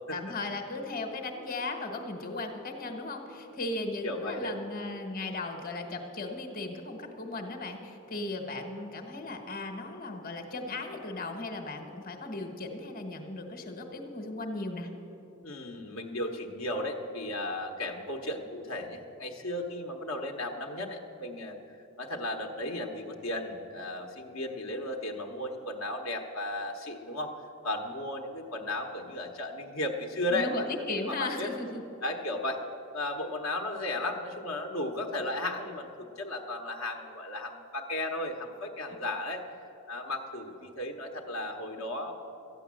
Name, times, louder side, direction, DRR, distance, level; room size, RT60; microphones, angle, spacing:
voice 1, 0.1-14.9 30.3-31.8, left 2 dB, 45° left, 4 dB, 1.3 m, -36 dB
voice 2, 4.0-4.6 15.4-21.6 22.0-27.3 27.6-30.6 31.1-31.5 32.0-32.6 32.9-39.6 39.9-42.1, left 1 dB, 75° left, 2 dB, 1.1 m, -35 dB
13.5 x 9.4 x 7.5 m, 2.9 s
head